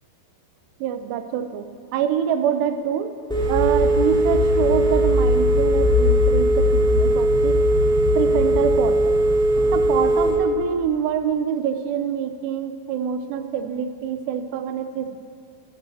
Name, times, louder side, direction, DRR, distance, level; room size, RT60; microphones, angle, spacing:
voice 1, 0.8-3.2 3.5-7.6 8.2-9.2 9.7-15.2, right 8 dB, 85° right, 9 dB, 2.8 m, -26 dB
Telephone, 3.3-10.3, equal, ahead, 1.5 m, -18 dB
12.0 x 11.0 x 6.7 m, 2.3 s
omnidirectional pair, 4.8 m